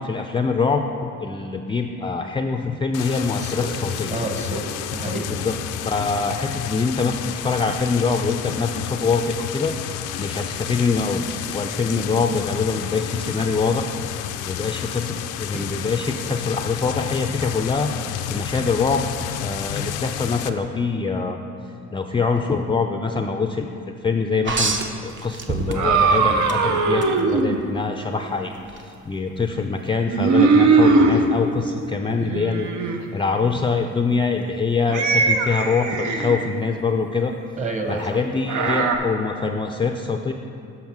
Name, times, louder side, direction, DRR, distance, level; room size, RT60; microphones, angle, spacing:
voice 1, 0.0-4.2 5.3-5.6 5.8-9.7 10.2-13.9 14.5-19.1 19.4-21.4 21.9-28.5 29.0-32.7 33.1-37.3 37.9-40.3, left 4 dB, 15° left, 4 dB, 0.4 m, -24 dB
sound 1, 2.9-20.5, left 10 dB, 90° left, 0.5 m, -31 dB
voice 2, 4.1-5.3 15.5-15.7 37.6-38.2, right 2 dB, 25° right, 3 dB, 1.1 m, -29 dB
sound 2, 24.5-26.1 26.5-27.1 28.7-28.8, right 4 dB, 40° right, 0.8 m, -26 dB
sound 3, 25.7-27.6 30.0-31.2 32.0-33.0 34.9-36.5 38.5-39.0, right 4 dB, 75° right, 0.8 m, -19 dB
7.2 x 5.7 x 6.0 m, 2.6 s
cardioid pair, 90°, 30 cm